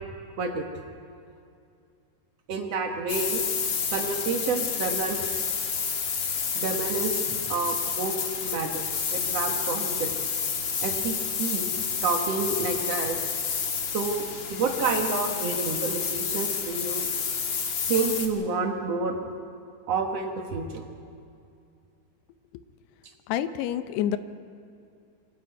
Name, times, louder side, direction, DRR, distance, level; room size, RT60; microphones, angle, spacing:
voice 1, 2.5-3.4 3.9-5.2 6.5-8.8 9.1-10.1 10.8-11.7 12.0-13.2 13.9-14.2 14.5-17.1 17.9-19.2 19.9-20.8, right 4 dB, 85° right, 2 dB, 1.4 m, -29 dB
sound 1, 3.1-18.3, left 6 dB, 55° left, 1.7 m, -29 dB
voice 2, 23.3-24.2, left 11 dB, 80° left, 11 dB, 2.8 m, -27 dB
28.0 x 23.0 x 4.7 m, 2.4 s
omnidirectional pair, 5.0 m